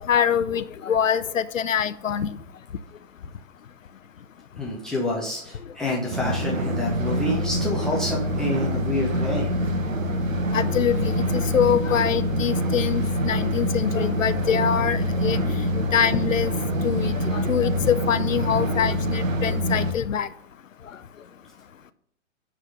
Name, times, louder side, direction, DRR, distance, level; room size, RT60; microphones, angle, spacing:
voice 1, 0.1-2.3 10.5-15.6 15.9-16.5 16.8-20.3, left 8 dB, 75° left, 0.7 m, -24 dB
voice 2, 4.6-9.6, left 2 dB, ahead, 0.4 m, -28 dB
sound 1, 6.1-19.9, equal, 75° right, 1.2 m, -25 dB
9.8 x 3.7 x 6.3 m
figure-of-eight pair, 125°, 40 cm